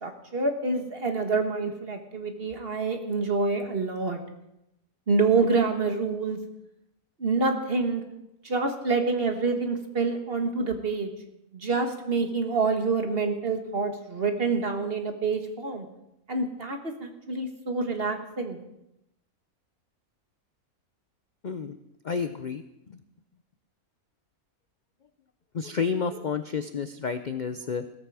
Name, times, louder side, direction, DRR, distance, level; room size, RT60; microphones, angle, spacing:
voice 1, 0.0-4.2 5.1-6.4 7.2-8.0 8.4-11.1 11.5-15.9 16.3-18.6, right 4 dB, 40° right, 5 dB, 1.7 m, -27 dB
voice 2, 21.4-21.8 22.0-23.0 25.5-27.9, left 5 dB, 50° left, 10 dB, 0.6 m, -30 dB
16.5 x 14.0 x 4.9 m, 0.87 s
omnidirectional pair, 1.5 m